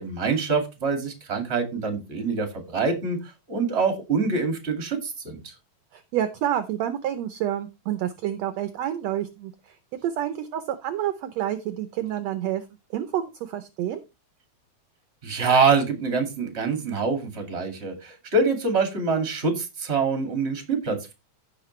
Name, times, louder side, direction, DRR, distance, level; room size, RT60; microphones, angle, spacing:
voice 1, 0.0-5.5 15.2-21.1, right 4 dB, 25° right, 6 dB, 2.2 m, -25 dB
voice 2, 5.9-9.7 10.0-12.6 12.9-14.0, right 11 dB, 70° right, 11 dB, 1.8 m, -28 dB
15.5 x 5.9 x 3.2 m, 0.25 s
omnidirectional pair, 3.5 m